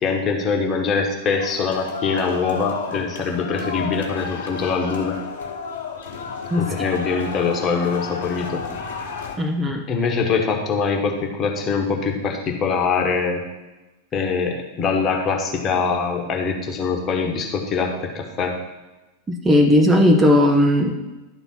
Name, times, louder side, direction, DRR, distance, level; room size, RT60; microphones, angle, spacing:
voice 1, 0.0-5.2 6.6-8.7 9.9-13.4 14.1-18.6, left 5 dB, 30° left, 2 dB, 1.4 m, -23 dB
sound 1, 1.3-9.3, left 5 dB, 60° left, 1.4 m, -32 dB
voice 2, 6.5-6.9 9.4-9.8 19.3-20.9, left 1 dB, 15° right, 2 dB, 0.9 m, -17 dB
11.5 x 4.0 x 5.9 m, 1.1 s
figure-of-eight pair, 90°, 0 cm